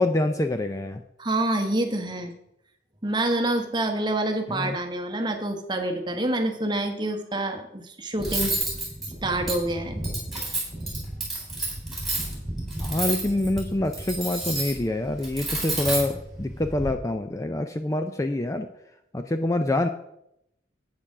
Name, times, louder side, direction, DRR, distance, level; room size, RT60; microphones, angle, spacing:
voice 1, 0.0-1.0 4.5-4.8 12.8-18.7 19.1-19.9, left 1 dB, 15° left, 7 dB, 0.4 m, -26 dB
voice 2, 1.2-2.3 3.0-8.6 9.2-10.0, right 1 dB, 25° right, 5 dB, 1.1 m, -27 dB
Cutlery silverware, 8.2-16.9, right 2 dB, ahead, 3.6 m, -31 dB
8.7 x 6.9 x 6.0 m, 0.79 s
head